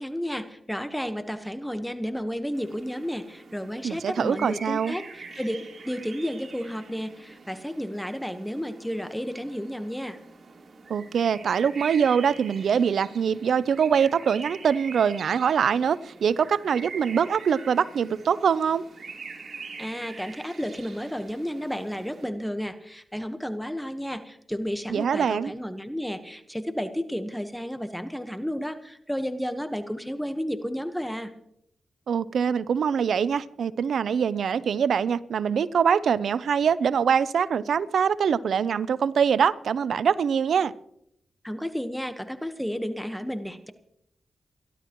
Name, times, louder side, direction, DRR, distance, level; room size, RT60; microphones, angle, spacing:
voice 1, 0.0-5.6 5.8-10.2 19.8-31.3 41.4-43.7, equal, 5° left, 9 dB, 1.2 m, -32 dB
sound 1, 2.5-22.3, right 4 dB, 60° right, 3.4 m, -44 dB
voice 2, 3.8-4.9 10.9-18.8 24.9-25.5 32.1-40.7, right 7 dB, 80° right, 18 dB, 0.5 m, -23 dB
28.0 x 12.0 x 3.0 m, 0.75 s
cardioid pair, 50°, 0 cm